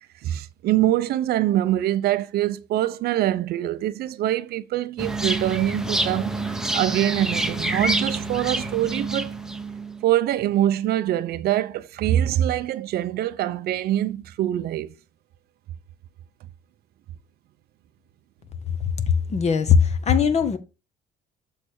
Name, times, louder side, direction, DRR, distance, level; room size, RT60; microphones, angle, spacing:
voice 1, 0.0-9.3 10.0-14.9, right 13 dB, 70° right, 0.6 m, -24 dB
sound 1, 5.0-10.0, right 2 dB, 5° right, 0.8 m, -27 dB
voice 2, 19.1-20.6, left 6 dB, 40° left, 1.0 m, -19 dB
7.1 x 3.3 x 6.1 m
cardioid pair, 110°, 17 cm